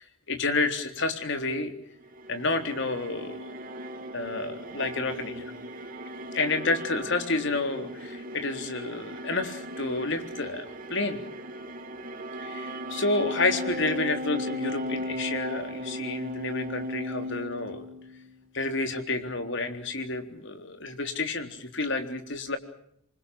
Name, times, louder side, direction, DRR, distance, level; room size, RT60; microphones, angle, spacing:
voice 1, 0.0-1.7 2.3-3.5 4.1-5.5 6.3-11.2 12.4-17.8 18.5-22.6, left 3 dB, 65° left, 7 dB, 3.7 m, -30 dB
sound 1, 2.0-18.4, equal, 45° right, 2.5 m, -37 dB
27.5 x 24.5 x 6.4 m, 0.68 s
head